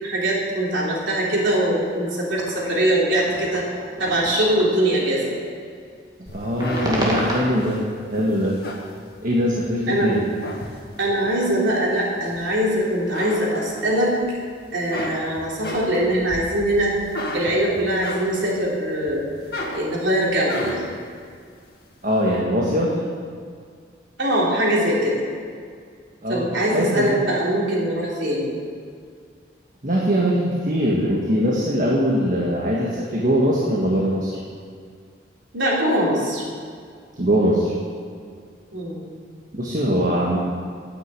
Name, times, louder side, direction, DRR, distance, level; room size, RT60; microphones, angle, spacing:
voice 1, 0.0-3.6 4.0-5.4 9.9-10.1 11.0-14.1 14.7-16.9 17.3-19.2 19.7-20.9 24.2-25.2 26.3-28.5 35.5-36.4 38.7-39.0, right 1 dB, 75° right, -4 dB, 3.3 m, -22 dB
sound 1, 0.8-5.1 6.3-7.5, right 1 dB, 20° right, 2.2 m, -31 dB
voice 2, 6.2-7.8 8.1-8.6 9.2-10.2 22.0-22.9 26.2-26.5 26.7-27.2 29.8-34.4 37.2-37.7 39.5-40.4, equal, 45° right, -4 dB, 1.6 m, -21 dB
sound 2, 6.3-9.7 10.1-11.2 11.7-12.7 13.0-14.3 14.6-18.6 19.0-21.0, left 1 dB, 55° left, 1.8 m, -34 dB
9.5 x 9.2 x 8.3 m, 2.1 s
head